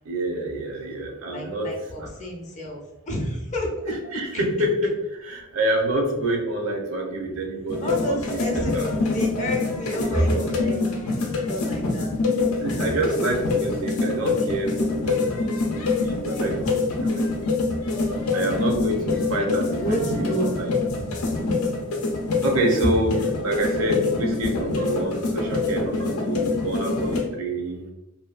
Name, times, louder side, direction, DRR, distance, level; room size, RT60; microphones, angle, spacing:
voice 1, 0.0-2.1 3.9-8.9 9.9-10.8 12.5-17.3 18.3-20.7 22.4-27.9, right 1 dB, 75° right, 1 dB, 0.6 m, -27 dB
voice 2, 1.3-2.8 3.1-3.7 4.3-4.4 7.8-12.1 18.7-19.1 19.4-19.5 19.8-20.5, equal, 35° left, 0 dB, 0.5 m, -29 dB
sound 1, 7.7-27.2, left 3 dB, 90° left, 0.5 m, -25 dB
2.6 x 2.1 x 2.4 m, 0.95 s
head